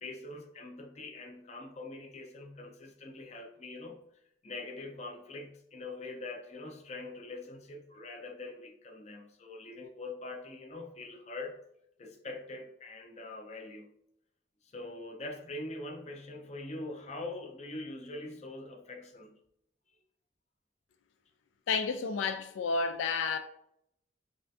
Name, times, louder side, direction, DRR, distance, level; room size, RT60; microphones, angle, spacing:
voice 1, 0.0-4.0 4.4-11.6 12.0-13.9 14.6-19.4, left 2 dB, 35° left, 0.5 m, -43 dB
voice 2, 21.7-23.4, left 4 dB, 85° left, 0.3 m, -31 dB
5.5 x 2.4 x 2.7 m
head